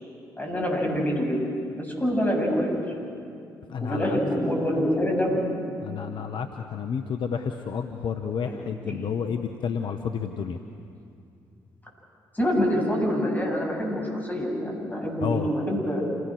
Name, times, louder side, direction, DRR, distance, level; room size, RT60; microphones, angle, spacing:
voice 1, 0.4-1.4 1.7-2.8 3.8-5.5 8.5-8.6 8.9-9.0 12.3-16.0, equal, 15° left, -1 dB, 7.7 m, -26 dB
voice 2, 3.7-4.2 5.8-10.6 15.2-15.5, left 7 dB, 55° left, 6 dB, 1.0 m, -30 dB
28.0 x 18.0 x 6.5 m, 2.5 s
hypercardioid pair, 45°, 10 cm